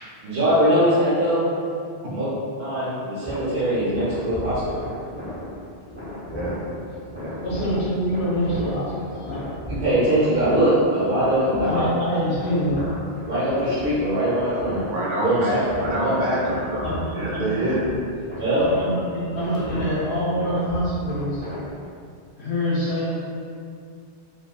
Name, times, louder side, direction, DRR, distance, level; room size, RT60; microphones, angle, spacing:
voice 1, 0.2-1.5 2.1-2.3 2.6-4.6 9.7-11.8 13.2-14.8 15.2-15.6 16.0-16.1 18.4-18.6, right 1 dB, 75° right, -12 dB, 1.0 m, -21 dB
sound 1, 3.2-22.0, equal, 10° left, 1.4 m, -35 dB
voice 2, 6.2-6.5 7.1-7.3 14.5-16.8 17.1-17.8, right 1 dB, 55° right, -5 dB, 0.7 m, -27 dB
voice 3, 7.4-9.5 11.6-12.8 16.8-17.6 18.6-21.4 22.4-23.1, equal, 80° left, -7 dB, 0.9 m, -26 dB
2.7 x 2.5 x 2.2 m, 2.3 s
omnidirectional pair, 1.1 m